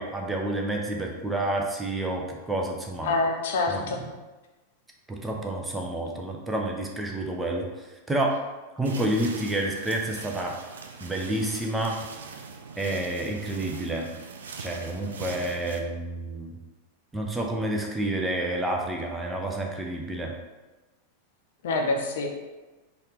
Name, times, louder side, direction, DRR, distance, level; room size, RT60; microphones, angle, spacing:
voice 1, 0.0-3.1 3.7-3.8 5.1-8.4 8.8-10.6 11.0-12.0 12.8-14.1 14.6-16.5 17.1-20.3, right 1 dB, 10° right, 0 dB, 0.6 m, -29 dB
voice 2, 3.0-4.0 21.6-22.3, left 3 dB, 55° left, 2 dB, 0.5 m, -26 dB
sound 1, 8.8-15.8, right 5 dB, 65° right, 0.3 m, -41 dB
4.0 x 2.5 x 3.5 m, 1.2 s
figure-of-eight pair, 90°, 0 cm